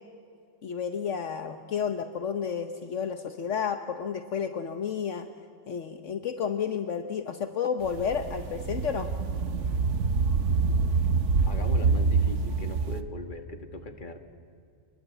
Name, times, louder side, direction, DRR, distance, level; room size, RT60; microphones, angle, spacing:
voice 1, 0.6-5.3 5.7-9.1, left 7 dB, 70° left, 7 dB, 1.3 m, -31 dB
sound 1, 7.8-13.0, right 4 dB, 65° right, 1.4 m, -26 dB
voice 2, 11.5-14.2, left 3 dB, 40° left, 6 dB, 1.9 m, -39 dB
27.5 x 21.5 x 8.2 m, 2.3 s
omnidirectional pair, 1.3 m